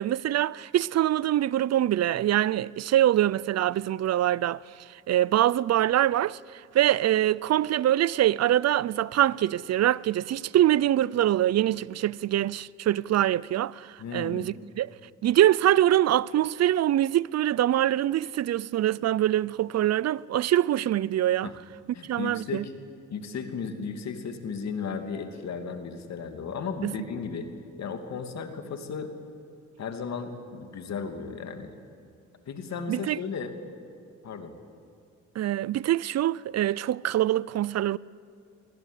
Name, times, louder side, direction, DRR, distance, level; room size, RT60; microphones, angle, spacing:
voice 1, 0.0-4.6 5.1-14.9 15.2-21.5 22.1-22.6 26.8-26.9 32.9-33.2 35.4-38.0, right 12 dB, 60° right, 0.6 m, -24 dB
voice 2, 14.0-14.5 21.4-21.6 21.9-22.7 23.1-27.5 27.8-29.1 29.8-31.7 32.5-33.5 34.2-34.5, left 5 dB, 60° left, 2.8 m, -35 dB
27.5 x 23.5 x 8.4 m
cardioid pair, 90°, 30 cm